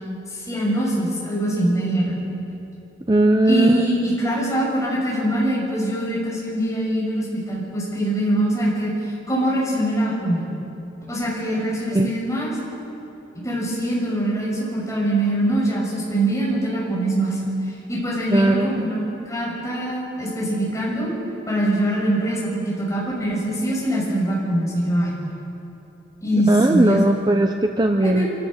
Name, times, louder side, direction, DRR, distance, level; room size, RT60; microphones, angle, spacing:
voice 1, 0.5-2.2 3.4-8.9 9.3-10.4 11.1-12.5 13.4-17.4 17.9-21.1 21.5-25.1 26.2-27.0 28.0-28.3, right 1 dB, 15° left, -6 dB, 6.6 m, -23 dB
voice 2, 3.1-3.9 11.9-12.1 18.3-18.9 26.5-28.5, right 1 dB, 20° right, 5 dB, 0.6 m, -18 dB
25.0 x 16.0 x 6.6 m, 3.0 s
head